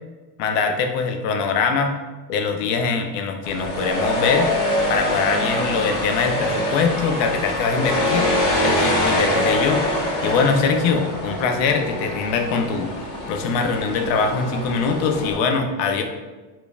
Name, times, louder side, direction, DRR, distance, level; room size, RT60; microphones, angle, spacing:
voice 1, 0.4-2.0 2.3-4.5 4.9-8.3 8.6-9.8 10.2-12.9 13.3-16.0, left 5 dB, 70° left, 5 dB, 0.7 m, -22 dB
sound 1, 3.4-15.3, left 1 dB, 40° left, 1.5 m, -24 dB
5.1 x 2.9 x 2.3 m, 1.3 s
supercardioid pair, 115°, 50 cm